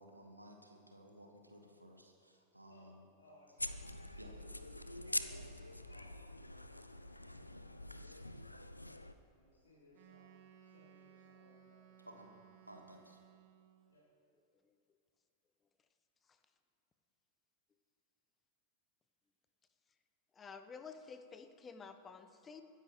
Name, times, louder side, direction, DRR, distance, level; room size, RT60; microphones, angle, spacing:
voice 1, 0.0-3.0 4.2-4.3 5.1-5.3 12.0-12.3 12.7-13.2, equal, 85° right, 3 dB, 1.5 m, -57 dB
voice 2, 3.2-8.5 9.3-12.3 13.9-14.1, left 1 dB, 70° left, -7 dB, 2.5 m, -66 dB
sound 1, 3.6-9.1, left 1 dB, 85° left, 0.5 m, -44 dB
Wind instrument woodwind instrument, 9.9-14.0, right 9 dB, 45° right, 1.6 m, -62 dB
voice 3, 20.3-22.6, left 5 dB, 20° left, 10 dB, 0.9 m, -51 dB
23.0 x 10.0 x 3.1 m, 2.3 s
figure-of-eight pair, 90°, 0 cm